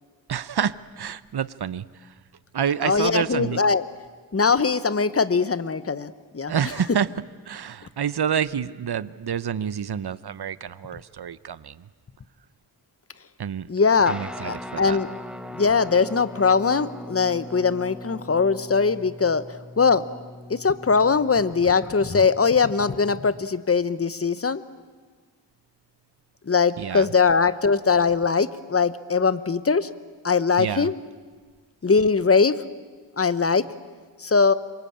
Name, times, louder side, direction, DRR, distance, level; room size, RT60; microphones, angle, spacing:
voice 1, 0.3-2.1 2.5-3.6 6.5-7.1 7.5-11.9 13.4-13.7 14.1-15.0 26.8-27.1 30.6-30.9, right 8 dB, 60° right, 17 dB, 0.8 m, -28 dB
voice 2, 2.8-3.8 4.3-6.5 13.7-14.2 14.4-15.1 15.5-19.4 19.8-20.1 20.5-24.6 26.4-29.9 30.2-30.9 31.8-32.6 33.2-33.7 34.2-34.5, left 5 dB, 30° left, 15 dB, 0.9 m, -21 dB
Guitar, 14.1-23.4, left 1 dB, ahead, 1.3 m, -41 dB
26.5 x 23.0 x 8.7 m, 1.5 s
wide cardioid pair, 90°, 43 cm